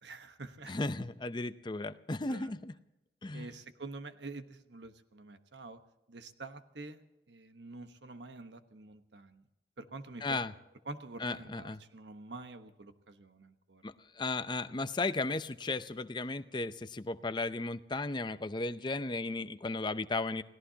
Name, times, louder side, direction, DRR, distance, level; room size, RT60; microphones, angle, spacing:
voice 1, 0.0-0.8 2.3-2.5 3.3-5.8 6.1-9.5 9.8-10.5 10.8-13.8, right 3 dB, 85° right, 8 dB, 1.2 m, -47 dB
voice 2, 0.7-2.7 3.2-3.5 10.2-10.5 11.2-11.8 13.8-20.4, left 3 dB, 25° left, 11 dB, 0.6 m, -35 dB
29.5 x 17.0 x 2.9 m, 0.95 s
head